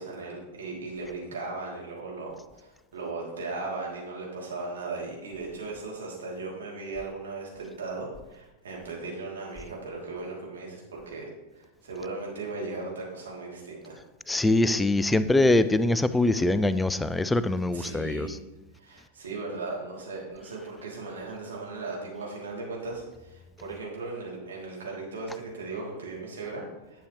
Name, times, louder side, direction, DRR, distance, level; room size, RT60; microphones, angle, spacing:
voice 1, 0.0-14.0 17.7-18.3 18.7-27.0, right 3 dB, 65° right, -3 dB, 3.0 m, -37 dB
voice 2, 14.3-18.3, left 2 dB, 10° left, 14 dB, 0.4 m, -23 dB
11.0 x 8.1 x 3.2 m, 1.0 s
figure-of-eight pair, 90°, 0 cm